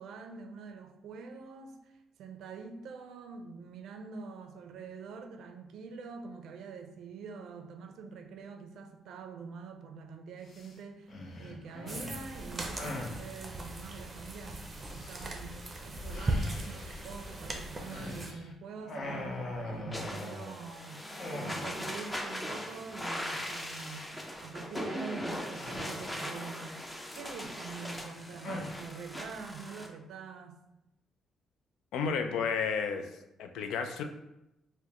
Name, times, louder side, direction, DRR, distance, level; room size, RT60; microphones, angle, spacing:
voice 1, 0.0-1.9 2.2-19.3 19.6-24.1 24.3-30.6, right 5 dB, 75° right, 5 dB, 0.4 m, -45 dB
sound 1, 10.5-10.7 11.1-13.2 14.7-15.4 16.1-18.5 18.8-20.7 21.2-21.9 22.2-22.3 22.6-22.9 23.1-24.0 25.5-26.4 27.1-28.8, left 1 dB, 55° left, 0.7 m, -43 dB
sound 2, 11.9-18.3, right 1 dB, 30° right, 0.6 m, -38 dB
sound 3, 19.9-29.9, equal, 15° left, 0.7 m, -40 dB
voice 2, 31.9-33.1 33.4-34.0, left 6 dB, 85° left, 6 dB, 0.3 m, -31 dB
4.8 x 2.1 x 2.9 m, 0.90 s
cardioid pair, 90°, 0 cm